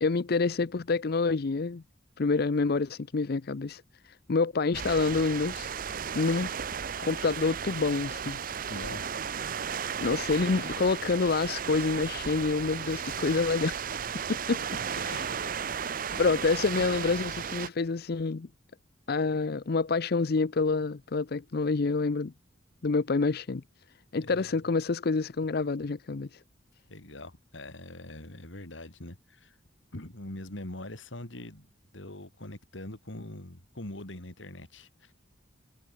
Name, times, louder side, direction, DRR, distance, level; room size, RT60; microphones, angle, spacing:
voice 1, 0.0-1.8 2.2-5.7 6.1-6.5 7.0-8.4 10.0-13.9 14.5-15.3 16.1-18.5 19.1-22.3 22.8-23.6 24.1-26.4, left 4 dB, 55° left, 0.6 m, -27 dB
sound 1, 4.7-17.7, right 7 dB, 45° right, 0.7 m, -35 dB
voice 2, 8.7-9.2 15.1-15.2 24.1-24.6 26.9-29.6 29.9-31.7 31.9-35.1, left 1 dB, 75° left, 3.2 m, -43 dB
head